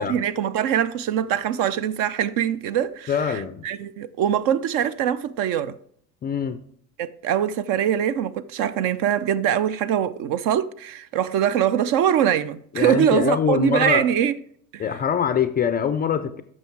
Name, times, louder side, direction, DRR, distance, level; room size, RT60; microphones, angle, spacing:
voice 1, 0.0-5.8 7.0-14.4 14.7-14.8, right 9 dB, 45° right, 0.5 m, -23 dB
voice 2, 3.1-3.6 6.2-6.6 12.7-14.1 14.8-16.4, left 7 dB, 20° left, 0.4 m, -23 dB
9.1 x 6.4 x 4.6 m
hypercardioid pair, 95°, 47 cm